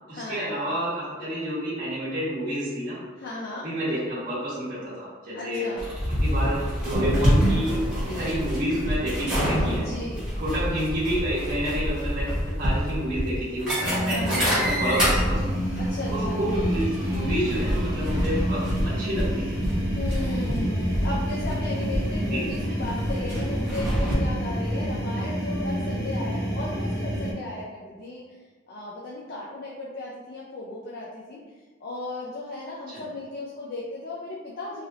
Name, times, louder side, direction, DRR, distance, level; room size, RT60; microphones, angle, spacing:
voice 1, 0.1-3.0 3.6-5.6 6.2-9.8 10.4-15.4 16.1-19.6 22.3-22.5 32.9-33.0, equal, 45° right, -9 dB, 1.1 m, -29 dB
voice 2, 3.2-3.7 5.3-5.9 9.7-10.3 14.1-14.8 15.7-16.5 19.9-28.2 28.7-31.4 31.8-34.8, left 2 dB, 55° left, -6 dB, 0.5 m, -35 dB
sound 1, 5.8-24.1, equal, 5° right, 1.0 m, -27 dB
sound 2, 13.8-27.3, equal, 20° left, 0.9 m, -29 dB
3.3 x 2.8 x 2.4 m, 1.4 s
head